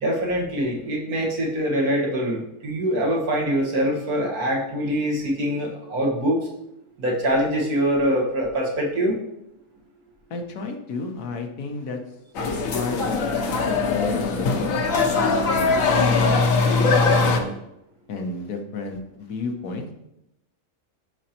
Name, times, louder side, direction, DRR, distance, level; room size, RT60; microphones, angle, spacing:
voice 1, 0.0-6.4 7.0-9.2, equal, 75° right, -1 dB, 2.0 m, -24 dB
voice 2, 10.3-12.0 12.7-13.3 13.7-17.6 18.1-19.8, left 3 dB, 90° left, 3 dB, 1.5 m, -32 dB
sound 1, 12.4-17.4, left 4 dB, 65° left, 1.2 m, -21 dB
11.0 x 5.1 x 2.9 m, 0.85 s
omnidirectional pair, 1.6 m